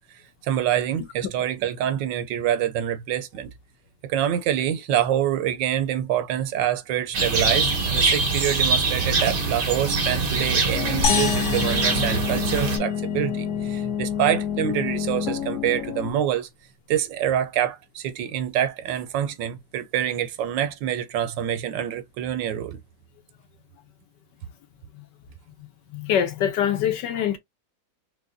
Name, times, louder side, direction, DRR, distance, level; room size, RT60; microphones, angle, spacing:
voice 1, 0.4-3.5 4.0-16.5 16.9-22.8, right 10 dB, 75° right, 1.2 m, -26 dB
sound 1, 7.1-12.8, right 3 dB, 45° right, 0.7 m, -23 dB
sound 2, 10.7-16.1, left 8 dB, 50° left, 1.2 m, -28 dB
sound 3, 11.0-13.5, left 6 dB, 90° left, 1.6 m, -29 dB
voice 2, 25.9-27.4, left 9 dB, 70° left, 1.3 m, -24 dB
4.7 x 2.2 x 2.6 m
omnidirectional pair, 2.1 m